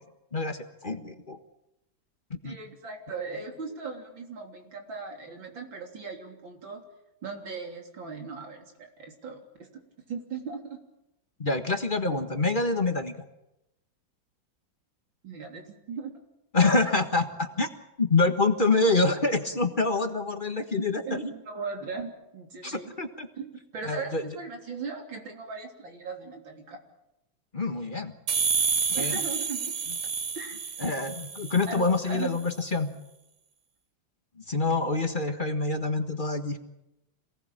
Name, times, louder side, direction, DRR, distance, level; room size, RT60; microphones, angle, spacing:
voice 1, 0.3-1.4 2.3-2.6 11.4-13.1 16.5-17.7 18.0-21.3 22.6-23.3 23.8-24.2 27.5-28.1 28.9-29.2 30.8-32.9 34.5-36.6, left 3 dB, 30° left, 6 dB, 1.5 m, -26 dB
voice 2, 2.4-6.8 7.2-9.7 10.1-10.8 15.2-16.1 21.1-22.9 23.4-26.8 29.0-29.7 30.4-30.6 31.7-32.4, right 4 dB, 85° right, 3 dB, 4.1 m, -38 dB
sound 1, 28.3-31.9, right 5 dB, 50° right, 1.4 m, -29 dB
27.0 x 18.0 x 8.8 m, 0.91 s
omnidirectional pair, 2.0 m